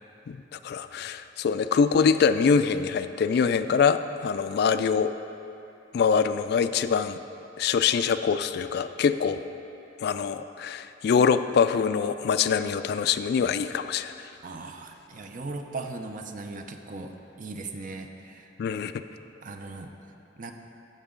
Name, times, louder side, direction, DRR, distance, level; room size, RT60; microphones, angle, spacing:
voice 1, 0.3-5.1 5.9-7.2 7.6-9.4 10.0-14.1 18.6-18.9, left 6 dB, 60° left, 11 dB, 0.3 m, -24 dB
voice 2, 14.4-18.5 19.4-19.9 20.4-20.5, right 3 dB, 45° right, 5 dB, 0.6 m, -38 dB
14.0 x 6.4 x 3.8 m, 2.8 s
head